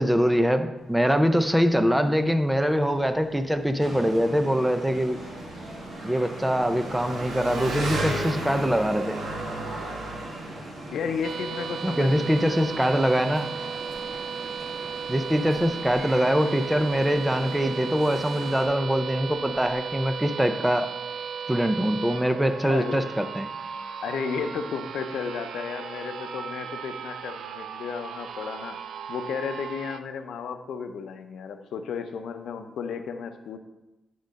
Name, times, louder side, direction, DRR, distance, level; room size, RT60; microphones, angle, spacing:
voice 1, 0.0-5.2 6.0-9.2 11.8-13.5 15.1-20.9 21.5-23.5, equal, 5° right, 8 dB, 0.5 m, -23 dB
Engine, 0.8-20.4, right 2 dB, 85° right, 1.5 m, -38 dB
sound 1, 3.8-18.7, right 1 dB, 45° right, 2.1 m, -41 dB
voice 2, 10.9-12.6 22.6-23.0 24.0-28.8 29.1-33.6, left 6 dB, 85° left, 7 dB, 0.6 m, -33 dB
sound 2, 11.2-30.0, right 6 dB, 70° right, 0.4 m, -36 dB
9.6 x 3.8 x 5.2 m, 0.99 s
wide cardioid pair, 175°, 0 cm